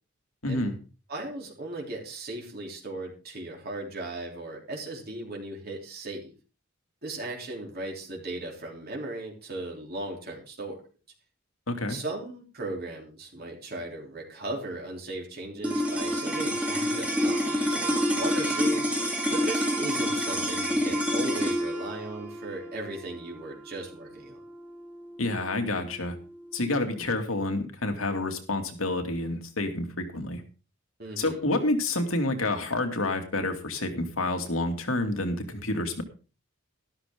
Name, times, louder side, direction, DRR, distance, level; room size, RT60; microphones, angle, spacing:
voice 1, 0.4-0.7 11.7-12.0 25.2-26.2 26.5-30.4 31.2-36.0, left 2 dB, 90° left, 5 dB, 2.5 m, -28 dB
voice 2, 1.1-6.3 7.0-10.8 11.9-18.9 19.3-24.4 31.0-31.4, right 2 dB, 50° right, -1 dB, 3.3 m, -37 dB
sound 1, 15.6-26.1, equal, 5° right, 2.3 m, -28 dB
13.0 x 13.0 x 3.7 m, 0.35 s
head